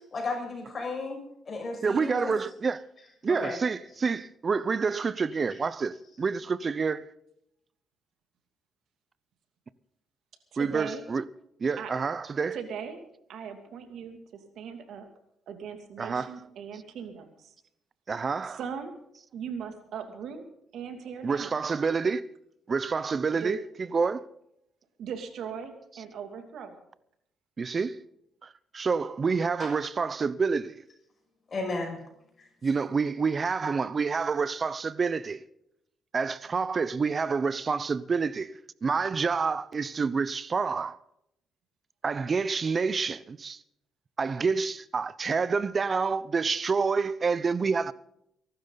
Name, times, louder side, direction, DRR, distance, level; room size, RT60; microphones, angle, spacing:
voice 1, 0.1-1.2 1.5-2.3 3.4-3.6 29.6-29.7 31.5-32.0 32.4-32.5, left 3 dB, 40° left, 6.2 m, -33 dB
voice 2, 1.8-2.8 3.2-7.1 10.6-11.2 11.6-12.6 16.0-16.3 18.1-18.6 21.2-22.2 22.7-23.6 23.9-24.2 27.6-28.0 28.4-30.7 32.6-35.4 36.1-38.5 38.8-41.0 42.0-43.6 44.2-47.9, right 5 dB, 40° right, 0.8 m, -28 dB
voice 3, 10.5-11.0 11.8-11.9 12.5-13.0 13.3-15.1 15.5-17.5 18.5-19.0 19.3-20.4 20.7-21.5 23.3-23.6 25.0-26.7, right 7 dB, 75° right, 2.7 m, -39 dB
23.0 x 12.5 x 4.1 m
cardioid pair, 90°, 0 cm